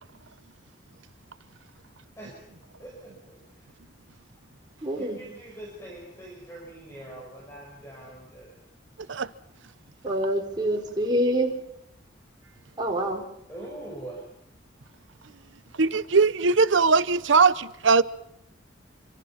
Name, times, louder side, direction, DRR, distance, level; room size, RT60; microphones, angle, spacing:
voice 1, 2.2-2.5 2.8-3.7 4.9-8.6 9.0-9.2 13.5-14.2, right 1 dB, 15° left, 5.9 m, -43 dB
voice 2, 4.8-5.2 10.0-11.5 12.8-13.2, right 1 dB, 20° right, 4.6 m, -26 dB
voice 3, 15.8-18.0, right 4 dB, 80° right, 0.8 m, -20 dB
26.0 x 25.5 x 5.8 m
head